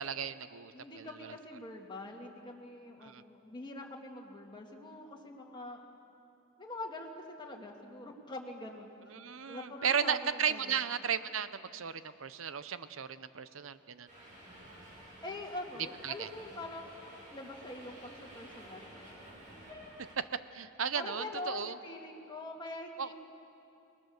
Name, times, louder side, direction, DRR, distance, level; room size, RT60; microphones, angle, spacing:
voice 1, 0.0-1.3 3.0-3.2 9.1-14.1 16.0-16.3 20.2-20.3 20.5-21.7 23.0-23.1, right 7 dB, 70° right, 13 dB, 0.8 m, -35 dB
voice 2, 0.7-5.8 6.6-8.9 9.5-10.8 15.2-18.9 21.0-23.1, left 2 dB, 20° left, 0 dB, 2.2 m, -44 dB
Subway metro underground, 14.1-20.1, equal, 40° right, 7.3 m, -52 dB
29.5 x 19.0 x 6.7 m, 2.7 s
head